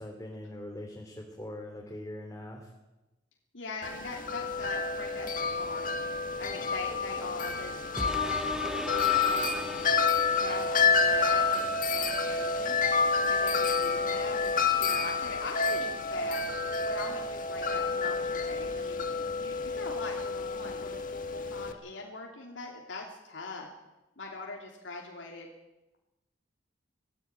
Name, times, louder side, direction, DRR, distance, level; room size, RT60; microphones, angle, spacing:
voice 1, 0.0-2.7, left 1 dB, 15° left, 0 dB, 3.0 m, -42 dB
voice 2, 3.5-5.9 6.4-9.9 10.4-12.8 13.3-16.4 16.8-19.0 19.4-23.7 24.2-25.5, left 3 dB, 80° left, -1 dB, 3.2 m, -42 dB
Wind chime, 3.8-21.7, left 4 dB, 45° left, 1.6 m, -29 dB
sound 1, 8.0-10.9 11.4-11.5, equal, 5° right, 0.9 m, -37 dB
20.5 x 15.5 x 9.0 m, 1.0 s
head